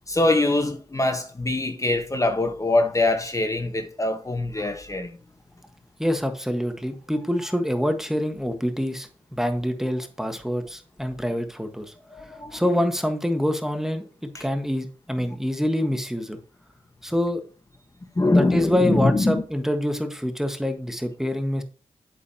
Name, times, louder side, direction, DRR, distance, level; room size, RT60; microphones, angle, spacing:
voice 1, 0.1-5.1 12.1-12.7 14.3-14.4 18.1-19.4, left 2 dB, 25° left, 1.4 m, -23 dB
voice 2, 6.0-11.9 12.5-14.1 14.4-16.4 17.0-17.4 18.3-21.6, equal, 5° right, 1.5 m, -26 dB
8.3 x 6.9 x 2.9 m
supercardioid pair, 45°, 13 cm